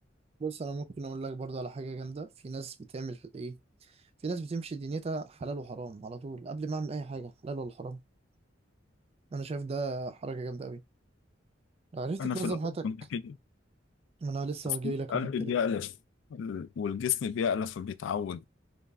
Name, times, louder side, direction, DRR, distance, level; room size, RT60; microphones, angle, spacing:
voice 1, 0.4-3.6 3.9-8.0 9.3-10.8 11.9-12.9 14.2-15.6, right 3 dB, 30° right, 0.3 m, -36 dB
voice 2, 12.2-12.6 12.8-13.4 14.8-15.9 16.3-18.4, left 7 dB, 75° left, 0.3 m, -32 dB
2.3 x 2.1 x 3.4 m
head